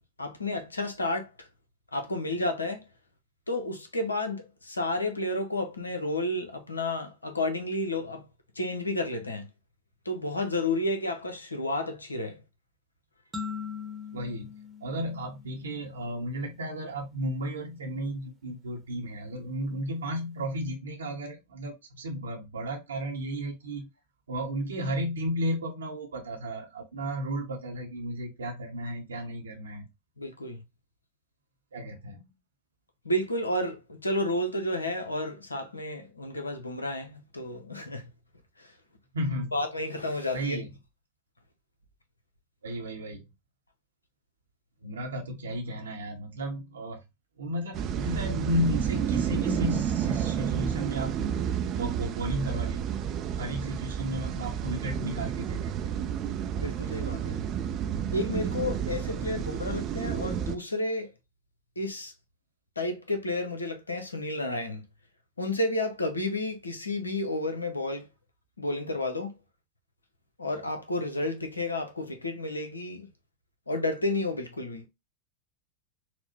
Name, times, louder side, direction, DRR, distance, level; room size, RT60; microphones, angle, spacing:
voice 1, 0.2-1.5 1.9-2.8 3.5-8.2 8.6-9.5 10.1-12.4 30.2-30.6 33.0-38.1 38.6-38.7 39.5-40.6 56.6-57.4 58.1-61.1 61.8-62.1 62.8-64.8 65.4-68.1 68.6-69.3 70.4-73.1 73.7-74.9, left 1 dB, 80° left, 0.7 m, -31 dB
sound 1, 13.3-16.0, left 6 dB, 15° right, 0.9 m, -40 dB
voice 2, 14.1-14.5 14.8-23.9 24.3-29.9 31.7-32.2 39.1-39.5 40.3-40.7 42.6-43.3 44.8-47.0 47.4-51.5 51.8-52.9 53.3-55.9, equal, 70° right, 0.8 m, -33 dB
sound 2, 47.7-60.6, right 9 dB, 35° right, 0.4 m, -31 dB
4.2 x 2.1 x 2.9 m
figure-of-eight pair, 90°, 0 cm